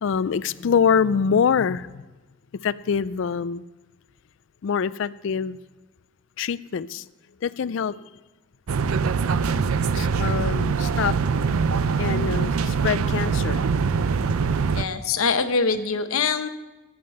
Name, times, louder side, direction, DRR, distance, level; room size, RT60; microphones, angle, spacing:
voice 1, 0.0-2.0 2.6-3.6 4.6-5.6 6.4-7.0 7.4-8.0 9.9-11.2 12.0-13.6, left 6 dB, 60° left, 18 dB, 0.4 m, -24 dB
sound 1, 8.7-14.8, right 5 dB, 90° right, 0.5 m, -23 dB
voice 2, 14.7-16.5, left 5 dB, 90° left, 10 dB, 0.8 m, -23 dB
12.5 x 8.6 x 6.5 m, 1.1 s
head